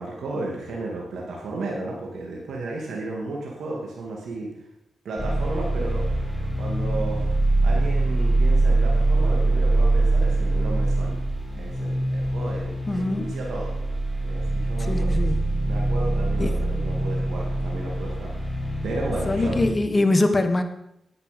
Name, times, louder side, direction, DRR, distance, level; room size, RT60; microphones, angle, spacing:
voice 1, 0.0-4.5 5.0-6.1 6.5-7.3 7.6-11.2 11.5-13.7 14.2-15.3 15.6-18.5 18.8-19.6, right 2 dB, 80° right, -1 dB, 2.3 m, -33 dB
sound 1, 5.2-19.7, right 2 dB, 5° left, 4.0 m, -23 dB
voice 2, 12.9-13.2 14.9-15.5 16.4-16.5 19.3-20.6, left 2 dB, 30° left, 8 dB, 1.4 m, -23 dB
9.9 x 9.4 x 5.3 m, 0.80 s
cardioid pair, 65°, 0 cm